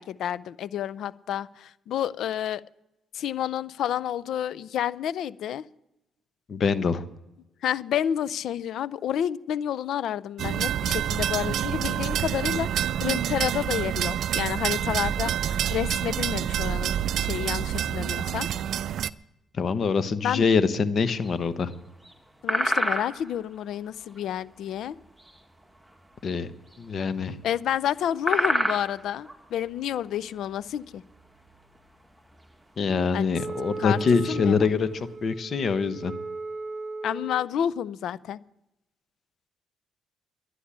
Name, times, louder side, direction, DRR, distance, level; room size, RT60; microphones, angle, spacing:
voice 1, 0.0-2.6 3.1-5.6 7.6-18.5 20.2-20.5 22.4-25.0 27.4-31.0 33.1-33.3 33.8-34.0 34.3-34.7 37.0-38.4, left 10 dB, 75° left, 18 dB, 0.5 m, -30 dB
voice 2, 6.5-7.0 19.5-21.7 26.2-26.5 26.8-27.4 32.8-36.1, left 5 dB, 50° left, 11 dB, 1.1 m, -24 dB
sound 1, 10.4-19.1, right 10 dB, 70° right, 0.4 m, -27 dB
sound 2, 21.2-21.8 22.0-22.1 22.5-23.4 24.0-25.4 25.6-26.0 26.2-26.4 26.7-26.8 27.6-27.7 28.0-29.4 29.8-30.1 30.6-31.8 32.2-32.5 32.9-33.0 33.3-33.7 34.4-34.5 34.8-35.0, equal, 5° right, 1.7 m, -28 dB
Wind instrument woodwind instrument, 33.3-37.5, right 4 dB, 35° right, 1.3 m, -37 dB
11.5 x 10.0 x 8.7 m, 0.90 s
cardioid pair, 90°, 0 cm